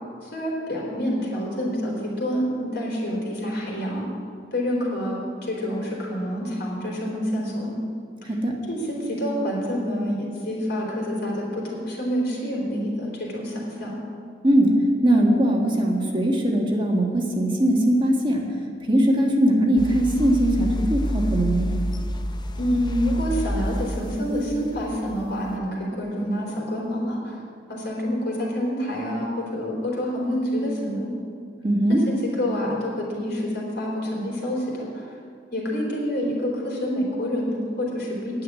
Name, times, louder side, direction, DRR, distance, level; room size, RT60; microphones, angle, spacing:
voice 1, 0.2-4.1 4.5-7.8 8.2-8.3 8.7-14.0 22.6-27.4 27.7-31.1 31.9-35.1 35.5-38.4, equal, 60° left, -3 dB, 3.8 m, -27 dB
voice 2, 15.0-18.4 18.9-21.7 31.6-32.0, right 1 dB, 25° right, 0 dB, 1.5 m, -20 dB
sound 1, 19.8-25.5, equal, 25° left, 0.6 m, -29 dB
9.6 x 7.9 x 9.5 m, 2.3 s
head